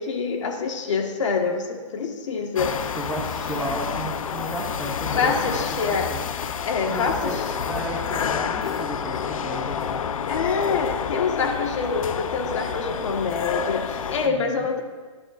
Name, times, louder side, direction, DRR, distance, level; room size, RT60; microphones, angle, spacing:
voice 1, 0.0-2.7 5.2-6.1 6.7-7.1 10.3-14.8, left 5 dB, 65° left, 3 dB, 1.5 m, -26 dB
sound 1, 2.6-14.3, left 7 dB, 90° left, 0.7 m, -29 dB
voice 2, 2.9-6.3 6.9-7.4 7.7-10.1 14.2-14.7, right 2 dB, 5° right, -4 dB, 0.6 m, -34 dB
18.5 x 11.5 x 2.5 m, 1.4 s
hypercardioid pair, 170°, 17 cm